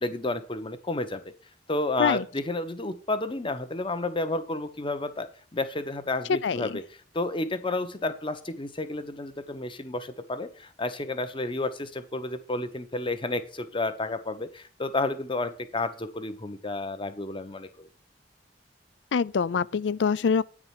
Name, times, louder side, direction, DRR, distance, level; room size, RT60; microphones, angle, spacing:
voice 1, 0.0-1.2 1.7-6.8 7.1-17.9, left 2 dB, 30° left, 1.0 m, -31 dB
voice 2, 6.4-6.8 19.1-20.4, left 6 dB, 75° left, 0.4 m, -25 dB
9.4 x 4.9 x 7.4 m
head